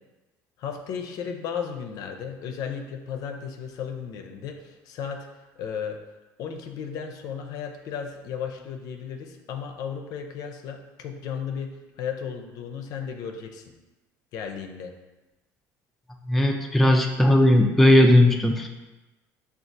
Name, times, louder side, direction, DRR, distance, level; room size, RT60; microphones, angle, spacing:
voice 1, 0.6-5.3 5.6-6.0 6.4-13.7 14.3-14.9, left 7 dB, 60° left, 4 dB, 0.5 m, -34 dB
voice 2, 16.3-18.7, left 1 dB, 5° left, 2 dB, 0.3 m, -17 dB
5.7 x 2.3 x 2.6 m, 1.1 s
cardioid pair, 120°, 7 cm